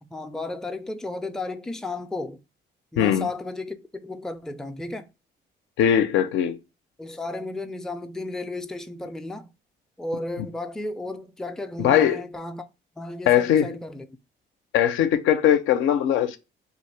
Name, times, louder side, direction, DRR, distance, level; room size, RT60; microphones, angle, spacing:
voice 1, 0.0-2.4 2.9-5.1 7.0-9.5 10.0-12.7 13.0-14.1, left 2 dB, 5° left, 0.3 m, -33 dB
voice 2, 3.0-3.3 5.8-6.6 11.8-12.2 13.3-13.8 14.7-16.4, left 10 dB, 85° left, 0.5 m, -20 dB
2.8 x 2.4 x 3.2 m
cardioid pair, 90°, 20 cm